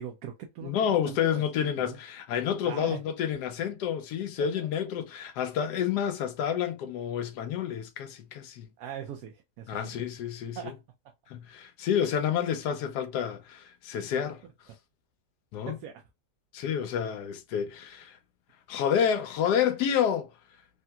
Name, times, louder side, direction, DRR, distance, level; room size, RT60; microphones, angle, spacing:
voice 1, 0.0-2.0 2.6-3.0 4.6-4.7 8.8-10.0 10.6-10.8 15.7-15.9, right 8 dB, 75° right, 1.0 m, -41 dB
voice 2, 0.6-8.7 9.7-10.7 11.3-14.4 15.5-15.8 16.5-18.2 18.7-20.3, left 8 dB, 80° left, 1.1 m, -29 dB
3.3 x 2.7 x 2.3 m
omnidirectional pair, 1.7 m